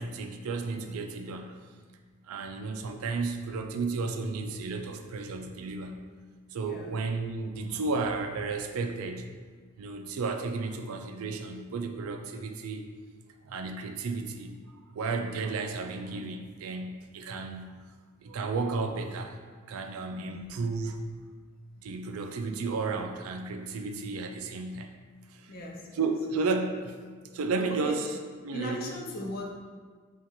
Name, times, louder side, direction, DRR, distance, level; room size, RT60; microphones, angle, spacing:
voice 1, 0.0-1.6 2.3-6.1 6.5-9.3 9.8-12.9 13.4-14.5 14.9-17.8 18.2-19.4 19.7-21.1 21.8-24.9 25.3-25.5 26.0-28.1 28.4-28.8, right 3 dB, 85° right, 5 dB, 0.4 m, -33 dB
voice 2, 25.5-26.1 27.7-28.0 28.5-29.5, equal, 45° left, -1 dB, 0.6 m, -38 dB
5.7 x 2.4 x 2.9 m, 1.5 s
head